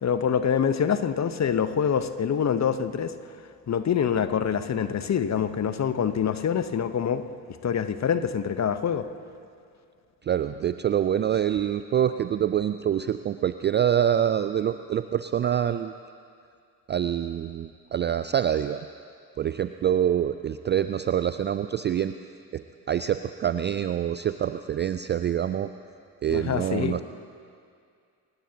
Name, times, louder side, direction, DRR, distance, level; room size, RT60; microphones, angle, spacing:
voice 1, 0.0-3.1 3.7-7.2 7.6-9.1 26.3-27.0, left 8 dB, 35° left, 11 dB, 1.0 m, -25 dB
voice 2, 10.2-15.9 16.9-18.9 19.4-22.1 22.5-22.6 22.9-25.7 26.2-27.0, right 9 dB, 25° right, 11 dB, 0.3 m, -26 dB
28.0 x 16.0 x 2.9 m, 2.3 s
figure-of-eight pair, 45°, 49 cm